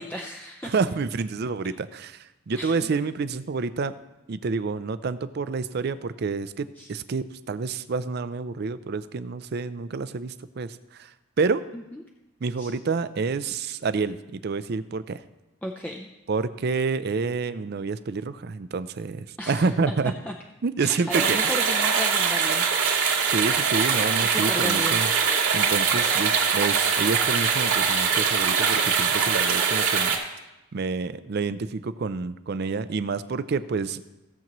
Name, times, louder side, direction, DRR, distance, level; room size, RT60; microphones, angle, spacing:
voice 1, 0.0-0.7 2.5-2.9 6.8-6.9 11.7-12.0 12.6-12.7 15.6-16.1 19.4-19.9 20.2-20.3 20.8-23.0 24.2-25.0 25.6-25.7, equal, 5° left, 1 dB, 0.5 m, -35 dB
voice 2, 0.6-2.2 2.5-3.9 4.3-11.1 11.4-11.6 12.4-15.2 16.3-20.1 20.6-21.4 23.3-25.1 25.5-30.2 30.7-34.0, right 4 dB, 50° right, 13 dB, 0.4 m, -28 dB
sound 1, 21.1-30.2, right 6 dB, 80° right, 2.3 m, -22 dB
16.5 x 7.3 x 3.0 m, 0.97 s
head